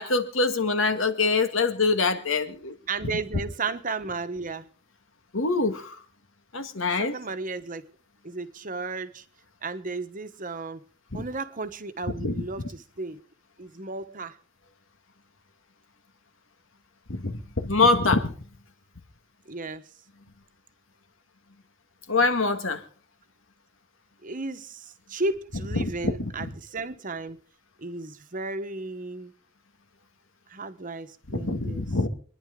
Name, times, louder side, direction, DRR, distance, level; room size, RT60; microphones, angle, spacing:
voice 1, 0.0-2.8 5.3-6.0 6.5-7.1 12.2-12.4 17.1-18.3 22.1-22.8 25.7-26.3 31.3-32.1, left 3 dB, 70° left, 1.9 m, -24 dB
voice 2, 2.9-4.7 7.0-7.8 8.2-9.2 9.6-10.8 11.1-13.2 13.6-14.4 19.5-19.8 24.2-27.4 27.8-29.3 30.5-31.8, right 3 dB, 40° right, 1.2 m, -34 dB
26.5 x 10.5 x 3.8 m
head